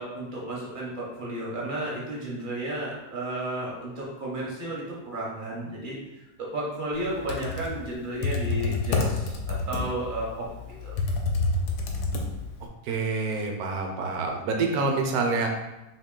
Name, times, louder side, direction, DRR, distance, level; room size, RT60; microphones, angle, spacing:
voice 1, 0.0-10.5 10.8-11.0, right 1 dB, 50° right, -4 dB, 0.6 m, -33 dB
Computer keyboard, 7.1-12.7, left 3 dB, 80° left, 1.1 m, -28 dB
voice 2, 12.8-15.5, right 3 dB, 75° right, 2 dB, 1.0 m, -27 dB
2.9 x 2.9 x 3.6 m, 0.99 s
omnidirectional pair, 1.7 m